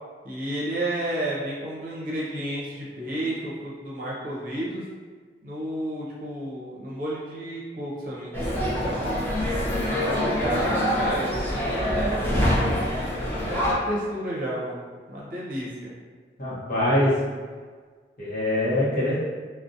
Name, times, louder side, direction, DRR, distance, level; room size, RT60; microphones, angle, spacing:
voice 1, 0.2-4.8 5.4-9.3 9.9-12.9 13.4-15.9, right 1 dB, 50° right, -5 dB, 0.6 m, -31 dB
sound 1, 8.3-13.7, equal, 10° left, 0.4 m, -25 dB
voice 2, 16.4-17.2 18.2-19.1, left 1 dB, 50° left, -8 dB, 0.8 m, -23 dB
2.5 x 2.0 x 2.5 m, 1.5 s
head